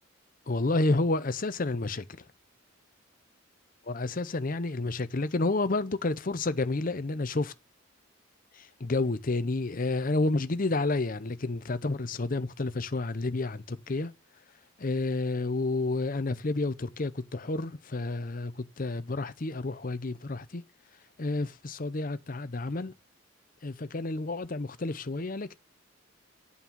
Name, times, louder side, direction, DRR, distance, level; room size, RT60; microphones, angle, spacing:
voice 1, 0.5-2.0 3.9-7.5 8.6-14.1 14.8-20.6 21.2-22.9 23.6-25.5, left 2 dB, 40° left, 0.7 m, -30 dB
8.7 x 5.5 x 7.2 m
head